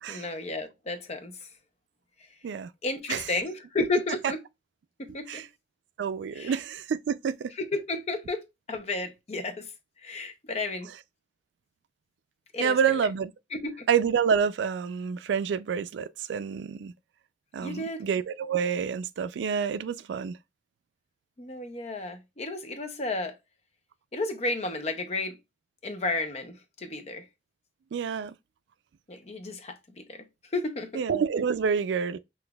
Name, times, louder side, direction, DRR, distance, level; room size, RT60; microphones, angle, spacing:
voice 1, 0.1-1.5 2.8-4.4 5.0-5.4 6.3-6.5 7.6-9.7 10.0-10.9 12.5-12.8 13.5-13.9 17.6-18.1 21.4-23.4 24.1-25.4 25.8-27.3 29.1-30.3 30.5-31.0, left 2 dB, 40° left, 0.6 m, -32 dB
voice 2, 6.0-7.5 12.6-13.3 13.9-16.9 17.5-20.4 27.9-28.3 30.9-32.2, right 7 dB, 85° right, 0.3 m, -28 dB
5.8 x 2.5 x 2.2 m
head